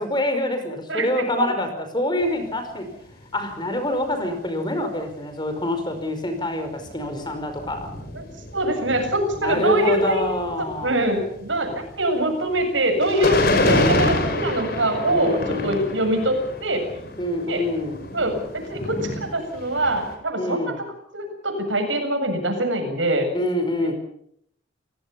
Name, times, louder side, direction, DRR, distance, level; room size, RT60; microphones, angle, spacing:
voice 1, 0.0-1.7 1.9-2.8 3.3-7.9 9.4-11.0 13.6-14.6 15.1-16.0 17.2-18.0 20.4-20.8 23.3-23.9, left 1 dB, 25° left, 7 dB, 5.1 m, -26 dB
voice 2, 0.9-1.4 8.1-8.2 8.5-10.3 10.8-16.9 17.5-17.6 18.1-20.9 21.1-23.3 23.8-23.9, right 1 dB, 75° right, 5 dB, 7.6 m, -24 dB
sound 1, 2.2-2.5 3.1-3.2 3.6-3.7 4.0-4.1 6.7-20.2, left 2 dB, 50° left, 5.4 m, -28 dB
29.5 x 18.5 x 7.1 m, 0.68 s
head